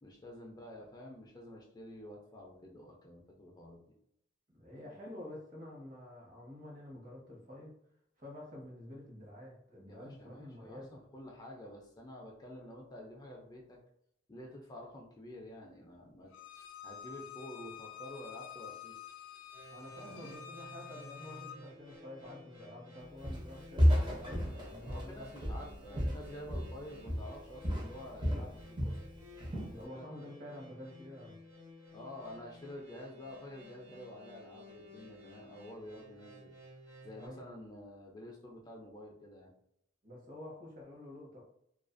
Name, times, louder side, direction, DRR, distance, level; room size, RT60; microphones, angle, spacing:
voice 1, 0.0-3.8 9.9-13.8 14.3-16.3 16.8-19.0 20.1-20.4 24.7-29.0 29.9-30.0 31.9-36.5 37.0-39.5, left 1 dB, 20° left, 0 dB, 0.4 m, -49 dB
voice 2, 4.5-7.7 8.2-11.0 19.7-25.3 25.9-26.2 29.7-31.4 37.1-37.5 40.0-41.4, left 1 dB, 45° right, -2 dB, 1.0 m, -49 dB
Bowed string instrument, 16.3-21.6, left 9 dB, 90° left, 0.4 m, -49 dB
sound 1, 19.5-37.3, left 1 dB, 70° right, 1.2 m, -55 dB
Walk footsteps, 23.2-23.5 23.8-26.8 27.1-27.4 27.6-29.0 29.4-29.8, equal, 25° right, 0.6 m, -31 dB
2.4 x 2.3 x 2.5 m, 0.74 s
head